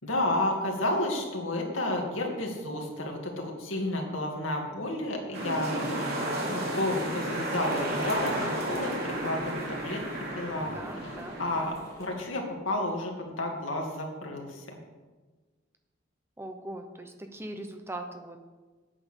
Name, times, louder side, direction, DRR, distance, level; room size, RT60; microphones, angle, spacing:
voice 1, 0.0-10.0 10.4-14.8, left 1 dB, 85° left, 1 dB, 2.3 m, -31 dB
sound 1, 5.3-11.7, right 1 dB, 55° right, 2.6 m, -32 dB
sound 2, 6.2-12.3, equal, 20° left, 2.6 m, -49 dB
voice 2, 10.7-11.4 16.4-18.4, right 1 dB, 10° right, 6 dB, 0.8 m, -40 dB
8.8 x 8.7 x 6.4 m, 1.3 s
head